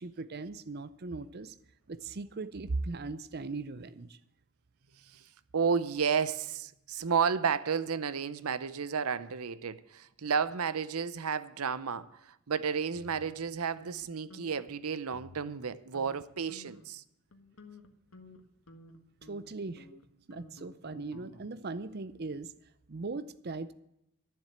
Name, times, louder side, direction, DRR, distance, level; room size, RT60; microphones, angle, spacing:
voice 1, 0.0-1.5 1.9-4.2 19.2-19.9 20.3-22.5 22.9-23.7, right 3 dB, 45° right, 0.6 m, -39 dB
voice 2, 5.1-17.0, right 6 dB, 90° right, 0.7 m, -32 dB
sound 1, 12.9-14.0 14.3-14.7 15.1-15.7 15.9-16.2 16.5-16.9 17.3-21.7, left 2 dB, 85° left, 1.6 m, -54 dB
13.0 x 7.5 x 8.8 m
head